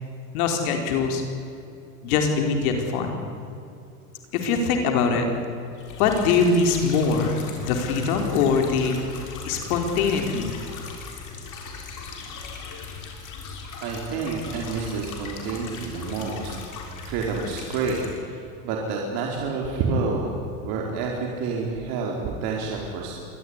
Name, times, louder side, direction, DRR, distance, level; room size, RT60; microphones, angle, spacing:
voice 1, 0.3-1.2 2.0-3.2 4.3-5.3 6.0-9.0 9.4-10.5, left 5 dB, 70° left, 4 dB, 4.6 m, -22 dB
sound 1, 5.8-18.2, left 5 dB, 40° left, 6.1 m, -38 dB
voice 2, 13.8-16.5 17.0-20.4 20.6-23.1, right 4 dB, 55° right, -1 dB, 4.8 m, -28 dB
25.5 x 19.5 x 9.8 m, 2.6 s
supercardioid pair, 115°, 46 cm